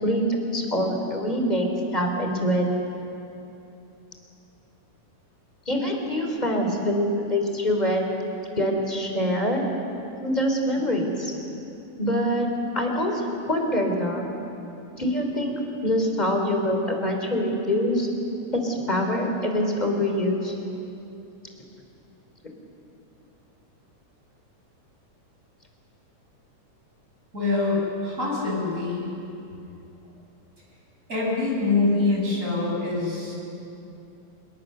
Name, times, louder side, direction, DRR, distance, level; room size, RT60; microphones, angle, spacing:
voice 1, 0.0-2.7 5.7-8.0 8.6-9.6 10.2-11.3 12.0-12.5 12.7-14.3 15.0-15.5 15.8-18.1 18.5-20.5, equal, 15° left, 2 dB, 3.1 m, -24 dB
voice 2, 27.3-29.1 31.1-33.3, left 3 dB, 25° right, -4 dB, 7.1 m, -24 dB
26.0 x 23.5 x 6.7 m, 2.8 s
omnidirectional pair, 3.6 m